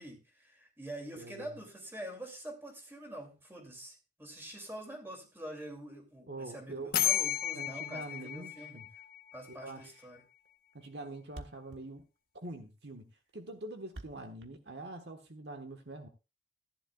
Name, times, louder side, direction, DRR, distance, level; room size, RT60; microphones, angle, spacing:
voice 1, 0.0-8.8 9.3-10.2, right 1 dB, 15° right, 2 dB, 2.7 m, -46 dB
voice 2, 1.1-1.5 6.3-7.0 7.5-8.9 9.5-9.9 10.7-12.0 12.3-16.1, right 2 dB, 65° right, 5 dB, 1.4 m, -45 dB
sound 1, 6.9-9.7, left 12 dB, 55° left, 1.1 m, -33 dB
Thump thud, 9.9-10.1 10.4-10.5 10.7-10.8 11.0-11.1 11.3-15.3, right 2 dB, 90° right, 1.2 m, -50 dB
15.0 x 10.5 x 2.4 m, 0.28 s
head